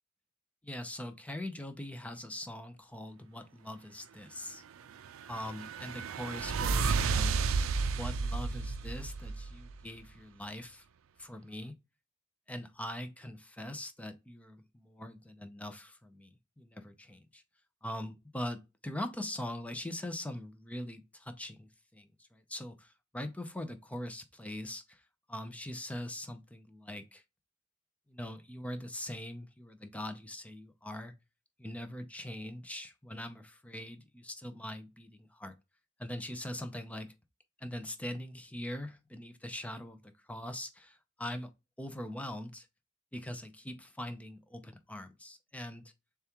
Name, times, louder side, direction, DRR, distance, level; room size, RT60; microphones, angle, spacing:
voice 1, 0.6-4.6 5.3-7.4 7.9-10.8 11.2-11.8 12.5-17.4 17.8-25.0 25.3-27.2 28.1-31.1 31.6-35.6 36.0-37.1 37.6-41.5 41.8-42.7 43.1-45.8, left 1 dB, 5° left, 0.5 m, -42 dB
sound 1, 4.9-9.8, right 4 dB, 85° right, 0.4 m, -32 dB
6.8 x 2.4 x 2.9 m
head